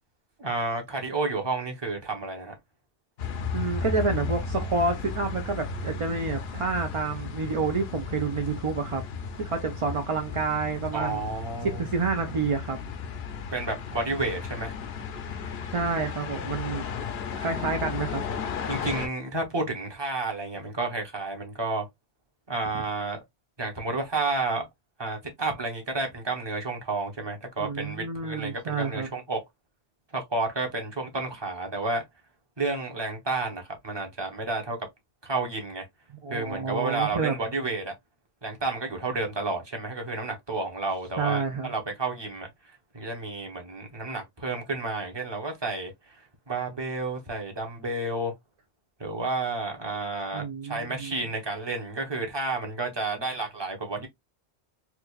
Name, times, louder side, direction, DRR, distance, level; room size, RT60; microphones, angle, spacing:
voice 1, 0.4-2.6 10.9-11.9 13.5-14.8 18.6-21.9 22.5-23.2 23.6-24.7 25.0-29.4 30.1-32.0 32.6-34.9 35.2-35.9 36.3-38.0 38.4-48.3 49.0-54.1, right 3 dB, 25° right, 0.9 m, -31 dB
sound 1, 3.2-19.1, left 5 dB, 70° left, 0.9 m, -34 dB
voice 2, 3.5-9.0 9.4-11.2 11.6-12.8 15.7-16.9 17.3-18.2 27.6-29.1 36.2-37.3 41.2-41.7 50.3-51.2, right 4 dB, 45° right, 0.4 m, -29 dB
4.4 x 2.4 x 2.3 m
omnidirectional pair, 1.1 m